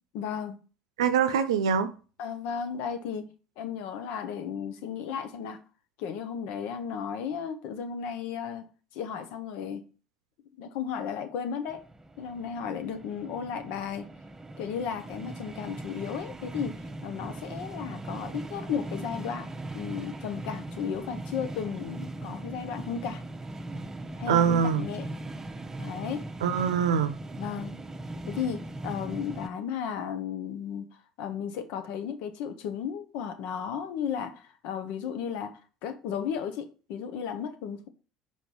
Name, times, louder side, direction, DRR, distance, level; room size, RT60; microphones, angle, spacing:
voice 1, 0.1-0.6 2.2-3.3 3.6-5.6 6.0-9.8 10.6-11.8 12.2-14.1 14.6-19.5 19.7-23.2 24.2-25.1 25.8-26.2 27.4-27.8 28.3-30.9 31.2-37.9, left 7 dB, 70° left, 1.0 m, -34 dB
voice 2, 1.0-1.9 24.3-24.9 26.4-27.2, right 7 dB, 85° right, 0.6 m, -24 dB
sound 1, 11.7-29.5, right 2 dB, 20° right, 0.8 m, -39 dB
5.3 x 4.4 x 4.6 m
hypercardioid pair, 70°, 3 cm